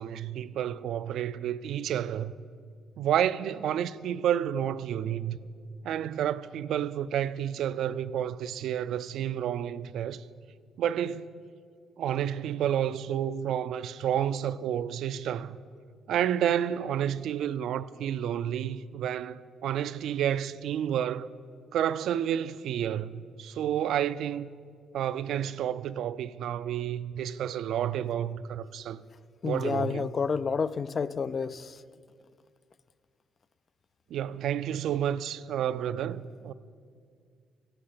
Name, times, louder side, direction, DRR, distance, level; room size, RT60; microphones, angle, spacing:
voice 1, 0.0-2.3 3.0-5.4 5.8-10.2 10.8-11.4 12.0-15.6 16.1-21.3 21.7-24.5 24.9-29.0 29.4-30.1 34.1-36.5, right 10 dB, 75° right, 0.3 m, -30 dB
voice 2, 29.4-31.8, left 5 dB, 45° left, 0.3 m, -30 dB
14.5 x 7.7 x 5.1 m
cardioid pair, 90°, 0 cm